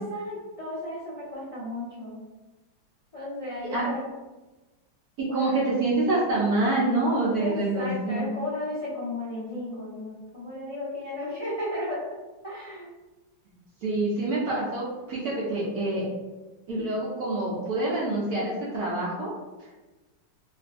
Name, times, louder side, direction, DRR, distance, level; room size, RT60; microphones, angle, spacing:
voice 1, 0.0-2.2 3.1-4.1 5.3-5.6 7.4-12.0 12.4-12.9, left 1 dB, 45° left, -9 dB, 0.4 m, -34 dB
voice 2, 5.2-8.3 13.8-16.1 16.7-19.3, right 2 dB, 65° right, -6 dB, 1.0 m, -26 dB
4.0 x 2.2 x 2.5 m, 1.1 s
omnidirectional pair, 2.3 m